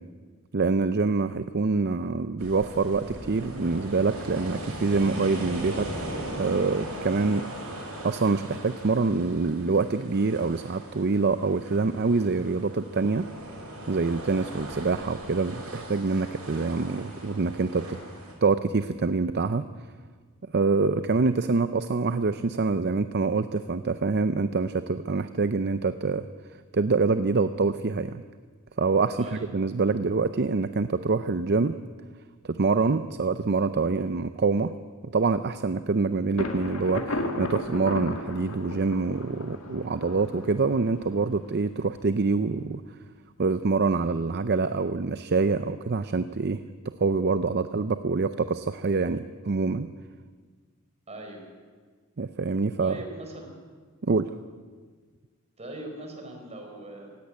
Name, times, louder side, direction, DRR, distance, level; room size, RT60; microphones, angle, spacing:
voice 1, 0.5-5.9 6.4-7.4 8.0-13.3 13.9-18.0 18.4-19.6 20.5-26.3 26.7-28.2 28.8-31.8 32.4-34.7 35.1-42.8 43.4-49.9 52.2-53.0 54.0-54.3, right 4 dB, 50° right, 11 dB, 0.6 m, -25 dB
sound 1, 2.4-18.3, right 1 dB, 90° right, 6.2 m, -39 dB
voice 2, 29.2-29.5 51.1-51.4 52.8-53.5 55.6-57.1, right 2 dB, 30° right, 2 dB, 4.5 m, -40 dB
Thunder, 36.4-42.0, left 2 dB, 75° left, 2.1 m, -35 dB
17.0 x 16.5 x 9.7 m, 1.6 s
head